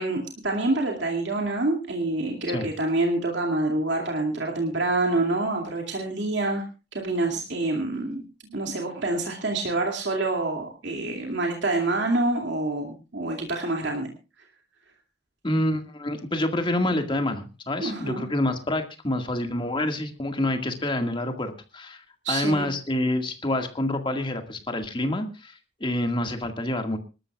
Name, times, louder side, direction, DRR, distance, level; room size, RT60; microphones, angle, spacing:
voice 1, 0.0-6.6 6.9-14.1 17.8-18.2 22.2-22.7, right 2 dB, 65° right, 1 dB, 2.4 m, -27 dB
voice 2, 15.4-27.0, left 1 dB, 25° left, 6 dB, 1.9 m, -27 dB
25.5 x 13.0 x 2.4 m, 0.31 s
head